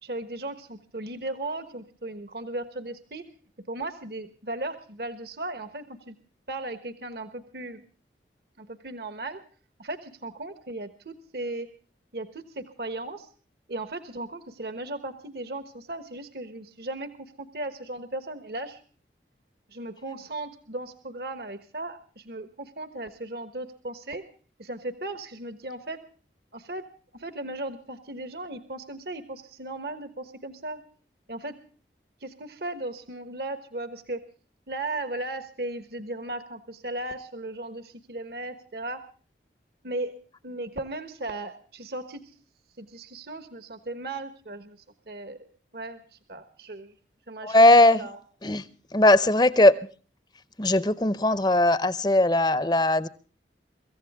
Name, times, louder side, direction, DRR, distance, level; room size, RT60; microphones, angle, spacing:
voice 1, 0.0-3.3 3.7-6.1 6.5-7.8 8.6-9.4 9.8-11.7 12.1-13.3 13.7-17.1 17.4-18.8 19.7-24.2 24.6-26.0 26.5-26.9 27.1-30.8 31.3-31.5 32.2-34.2 34.7-39.0 39.8-40.1 40.4-42.2 42.8-45.4 45.7-46.9 47.3-48.2, right 2 dB, 65° right, 11 dB, 1.3 m, -36 dB
voice 2, 47.4-48.0 48.4-48.6 48.9-49.8 50.6-53.1, left 1 dB, 25° left, 16 dB, 0.7 m, -19 dB
25.0 x 15.0 x 3.5 m, 0.41 s
head